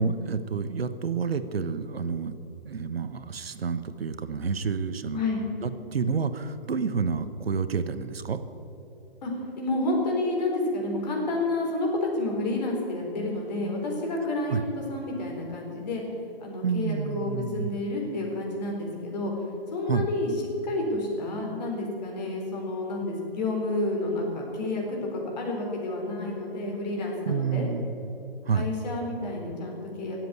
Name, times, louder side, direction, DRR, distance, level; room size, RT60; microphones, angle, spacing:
voice 1, 0.0-2.3 2.6-5.2 5.6-8.4 14.5-14.6 16.6-17.7 19.9-20.1 27.3-27.9 28.4-28.7, right 5 dB, 75° right, 11 dB, 1.1 m, -29 dB
voice 2, 9.6-16.0 16.4-19.3 19.7-20.3 20.6-27.7 28.5-30.2, left 2 dB, 45° left, -1 dB, 4.2 m, -30 dB
18.5 x 7.8 x 8.3 m, 2.9 s
figure-of-eight pair, 145°, 31 cm